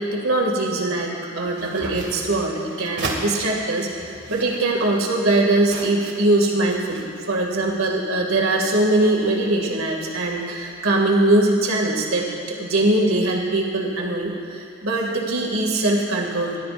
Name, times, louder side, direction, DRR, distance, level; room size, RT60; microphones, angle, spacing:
voice 1, 0.0-16.6, right 2 dB, 75° right, -2 dB, 2.4 m, -22 dB
sound 1, 1.5-3.3 4.0-6.4 6.7-7.4, right 3 dB, 55° right, 2.0 m, -35 dB
24.0 x 12.5 x 2.6 m, 2.6 s
head